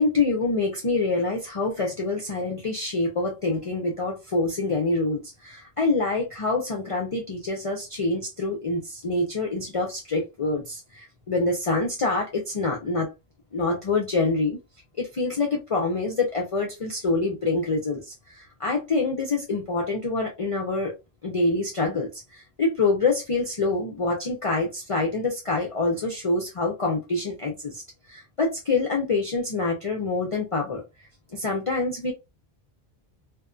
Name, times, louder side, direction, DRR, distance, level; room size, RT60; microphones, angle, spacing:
voice 1, 0.0-13.1 13.5-14.6 15.0-20.9 21.2-27.8 28.1-32.1, left 3 dB, 40° left, 0.5 m, -26 dB
2.7 x 2.5 x 2.2 m
omnidirectional pair, 1.1 m